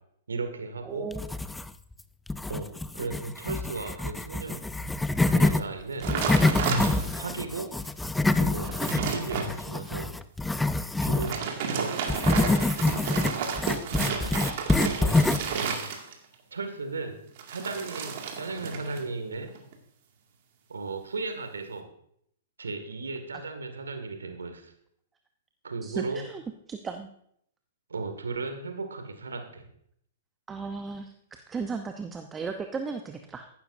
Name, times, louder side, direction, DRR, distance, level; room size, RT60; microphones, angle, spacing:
voice 1, 0.3-1.1 2.5-2.7 2.9-4.6 5.3-6.1 7.2-7.7 8.3-10.1 11.0-11.4 11.7-12.2 14.2-14.3 14.7-15.2 16.5-17.1 17.5-19.5 20.7-21.8 22.6-24.7 25.6-26.2 27.9-29.7, right 4 dB, 75° right, 6 dB, 2.1 m, -35 dB
voice 2, 0.8-1.2 25.8-26.4 26.7-27.1 30.5-33.5, right 5 dB, 15° right, 6 dB, 0.8 m, -36 dB
sound 1, 1.1-1.9 2.3-5.6 6.0-11.4 12.1-15.6, left 2 dB, 5° left, 0.5 m, -26 dB
sound 2, 6.0-7.3 7.8-7.9 8.4-9.5 11.1-16.3 17.4-19.1 19.3-19.7, right 5 dB, 50° right, 2.1 m, -31 dB
15.0 x 11.5 x 2.7 m, 0.70 s
figure-of-eight pair, 110°, 0 cm